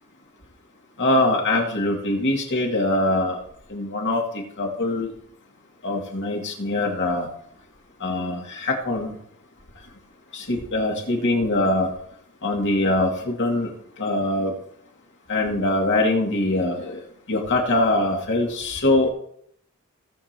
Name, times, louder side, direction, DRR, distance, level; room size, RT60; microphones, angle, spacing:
voice 1, 1.0-3.4 3.7-4.2 4.6-5.1 5.8-7.3 8.0-9.1 10.3-11.9 12.4-13.7 14.0-14.5 15.3-17.0 17.3-19.1, left 2 dB, 55° left, 0 dB, 2.5 m, -23 dB
18.0 x 7.2 x 3.0 m, 0.68 s
head